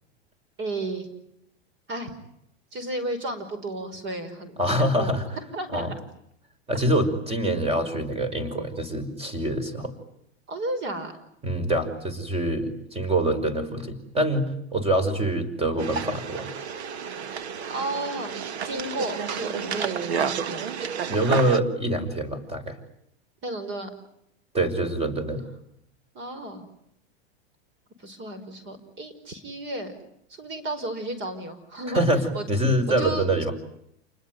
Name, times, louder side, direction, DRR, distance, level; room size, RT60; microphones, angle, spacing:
voice 1, 0.6-1.1 1.9-2.1 2.7-5.1 5.5-6.0 10.5-11.2 17.7-20.6 23.4-23.9 26.1-26.7 28.0-30.0 30.3-32.1 32.3-32.4 32.9-33.3, right 1 dB, 35° right, 10 dB, 5.3 m, -33 dB
voice 2, 4.6-5.2 5.7-5.9 6.7-9.9 11.4-16.5 21.0-22.8 24.5-25.4 31.9-33.5, right 1 dB, 20° right, 12 dB, 5.7 m, -25 dB
sound 1, 15.8-21.6, right 7 dB, 85° right, 1.6 m, -31 dB
29.0 x 20.5 x 9.5 m, 0.76 s
hypercardioid pair, 115°, 32 cm